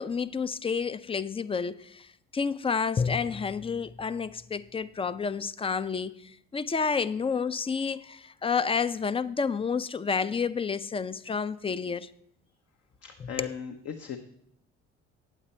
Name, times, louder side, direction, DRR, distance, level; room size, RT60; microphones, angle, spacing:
voice 1, 0.0-12.1 13.2-13.5, left 5 dB, 20° left, 0.4 m, -30 dB
voice 2, 13.0-14.2, left 7 dB, 55° left, 0.9 m, -37 dB
8.9 x 8.2 x 4.3 m
hypercardioid pair, 60°, 31 cm